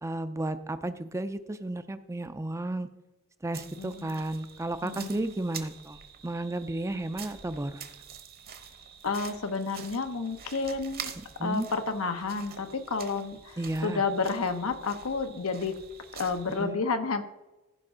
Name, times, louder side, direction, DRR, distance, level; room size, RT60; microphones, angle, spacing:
voice 1, 0.0-2.9 3.4-7.8 11.4-11.7 13.6-14.0 16.6-16.8, right 1 dB, 15° right, 11 dB, 0.4 m, -33 dB
sound 1, 3.5-16.6, right 7 dB, 45° right, 1.0 m, -46 dB
voice 2, 3.6-4.1 4.8-5.1 9.0-11.1 11.4-15.8 16.1-17.2, left 4 dB, 85° left, 8 dB, 1.0 m, -31 dB
15.0 x 5.2 x 3.8 m, 1.1 s
head